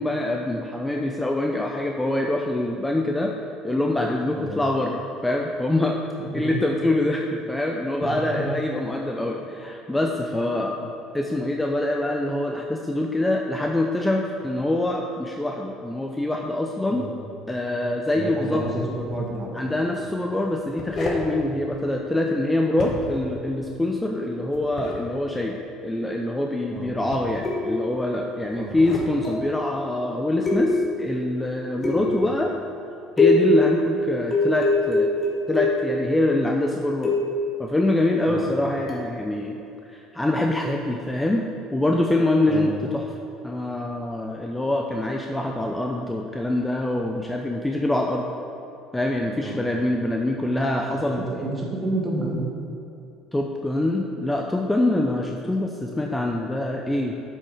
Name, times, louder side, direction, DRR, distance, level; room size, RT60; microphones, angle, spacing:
voice 1, 0.0-3.3 3.6-6.0 6.3-17.0 17.5-18.6 19.5-32.5 33.2-35.1 35.5-37.1 37.6-39.6 39.9-43.0 43.4-48.2 48.9-51.3 53.3-57.1, left 1 dB, 10° left, 1 dB, 0.6 m, -25 dB
voice 2, 8.0-8.4 16.9-17.1 18.1-18.7 19.0-19.5 19.8-20.0 26.7-26.9 28.5-28.8 31.9-32.2 38.3-38.5 42.5-42.7 49.4-49.6 50.9-52.4, right 2 dB, 25° right, -2 dB, 2.0 m, -30 dB
sound 1, 19.0-19.2 20.5-21.3 22.7-23.3 24.5-25.0 26.8-27.4 28.5-29.1, left 2 dB, 45° left, 1.4 m, -34 dB
sound 2, 27.4-28.0 29.2-29.6 30.5-31.1 31.8-32.3 33.2-33.7 34.3-36.0 37.0-37.5 38.9-39.1, left 2 dB, 30° left, 2.0 m, -23 dB
7.3 x 6.4 x 5.0 m, 2.8 s
supercardioid pair, 85°, 0 cm